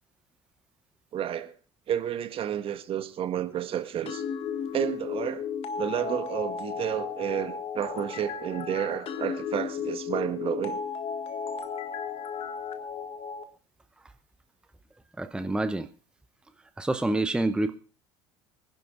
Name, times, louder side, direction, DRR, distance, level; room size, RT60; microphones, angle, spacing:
voice 1, 1.1-1.5 1.9-4.2 4.7-5.5 5.8-10.8, right 10 dB, 40° right, 1.4 m, -31 dB
sound 1, 4.1-13.4, left 7 dB, 45° left, 1.8 m, -34 dB
voice 2, 15.2-15.9 16.8-17.8, right 2 dB, 5° right, 0.7 m, -27 dB
25.0 x 11.0 x 2.5 m
figure-of-eight pair, 70°, 14 cm